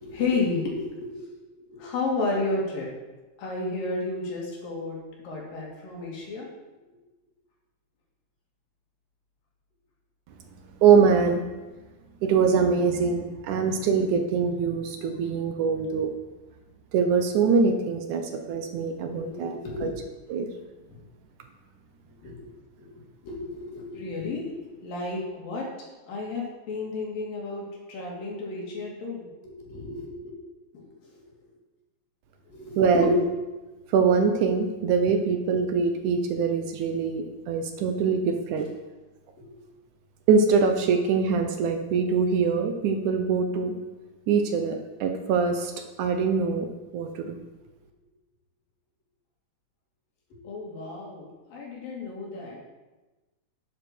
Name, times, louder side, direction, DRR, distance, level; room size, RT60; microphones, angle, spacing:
voice 1, 0.0-2.9 3.4-5.0 5.2-6.5 18.3-19.9 20.9-21.0 22.2-22.5 22.8-25.7 26.1-30.3 30.7-31.2 32.5-33.3 39.5-39.6 50.3-52.6, left 3 dB, 80° left, -3 dB, 4.5 m, -32 dB
voice 2, 10.8-11.4 12.2-16.1 16.9-18.2 18.5-19.9 20.3-20.5 32.8-33.2 33.9-38.6 40.3-43.7 44.3-45.7 46.0-46.7 46.9-47.4, right 5 dB, 70° right, 6 dB, 2.2 m, -23 dB
12.0 x 10.0 x 4.5 m, 1.2 s
omnidirectional pair, 4.0 m